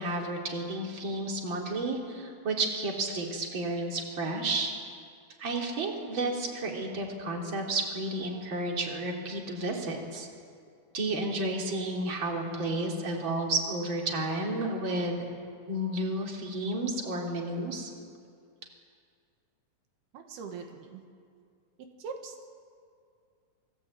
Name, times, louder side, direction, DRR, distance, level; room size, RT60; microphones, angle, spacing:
voice 1, 0.0-4.7 5.4-10.3 10.9-15.3 15.7-17.9, right 2 dB, 30° right, 0 dB, 3.9 m, -31 dB
voice 2, 20.1-21.0 22.0-22.5, right 5 dB, 85° right, 4 dB, 3.7 m, -41 dB
28.0 x 21.5 x 8.8 m, 2.3 s
omnidirectional pair, 4.4 m